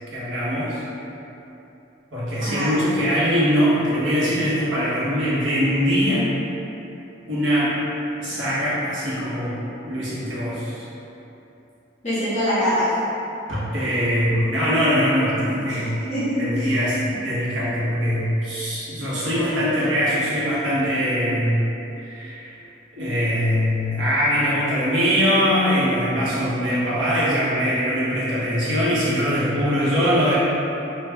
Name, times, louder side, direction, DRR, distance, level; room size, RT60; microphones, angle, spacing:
voice 1, 0.1-0.8 2.1-6.3 7.3-7.7 8.2-9.5 9.9-10.8 13.5-16.0 16.4-21.6 22.0-22.6 22.9-30.4, equal, 90° right, -9 dB, 1.0 m, -22 dB
voice 2, 2.4-2.7 12.0-12.9 15.7-16.7, equal, 35° left, -11 dB, 1.1 m, -24 dB
3.1 x 2.4 x 3.4 m, 2.9 s
head